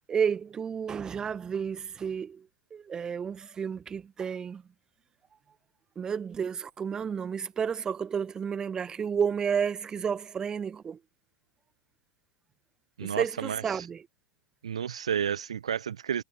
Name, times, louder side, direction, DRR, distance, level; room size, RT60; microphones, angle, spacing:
voice 1, 0.1-4.6 6.0-11.0 13.0-14.0, right 7 dB, 20° right, 1.2 m, -31 dB
voice 2, 13.0-13.9 14.6-16.2, right 8 dB, 70° right, 0.4 m, -31 dB
figure-of-eight pair, 90°, 3 cm